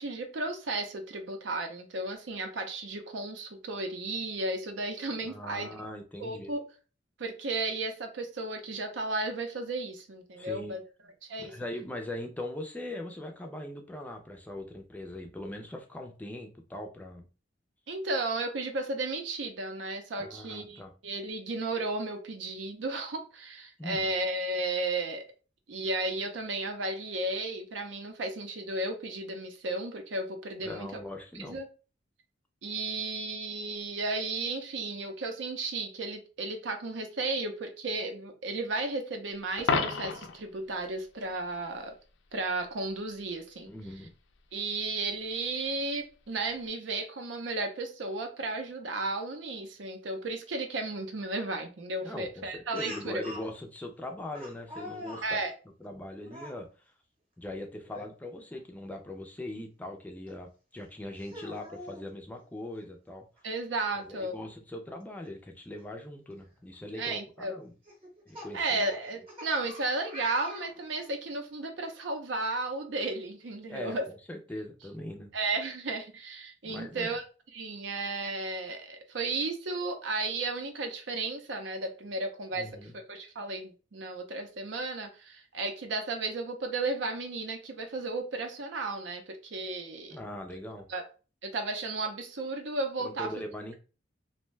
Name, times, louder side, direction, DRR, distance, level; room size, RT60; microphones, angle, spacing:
voice 1, 0.0-5.7 6.2-6.6 7.2-10.8 11.2-11.5 17.9-25.2 25.7-31.0 31.5-31.7 32.6-42.0 42.3-43.7 44.5-53.2 55.2-55.5 63.4-64.4 67.0-67.6 68.5-74.1 75.3-77.2 77.5-90.2 90.9-91.0 91.4-93.3, right 2 dB, 75° right, 0.6 m, -34 dB
voice 2, 5.2-6.5 10.4-10.7 11.4-17.3 20.2-20.9 23.8-24.1 30.6-31.6 43.7-44.1 52.0-55.4 55.8-56.7 57.4-63.3 64.0-67.7 68.3-68.8 73.7-74.0 74.3-75.3 76.6-77.1 82.5-82.9 90.1-90.9 93.0-93.7, left 1 dB, 10° left, 0.4 m, -41 dB
Coin (dropping), 39.6-40.4 46.5-46.7, left 4 dB, 80° left, 0.4 m, -29 dB
Speech, 52.7-53.5 54.3-55.3 56.2-56.6 57.8-58.1 58.5-58.6 60.3-60.4 61.2-62.0 63.4-63.5 63.8-63.9 65.8-65.9 66.5-66.7 67.8-71.2, equal, 30° right, 0.9 m, -44 dB
2.6 x 2.1 x 3.1 m
head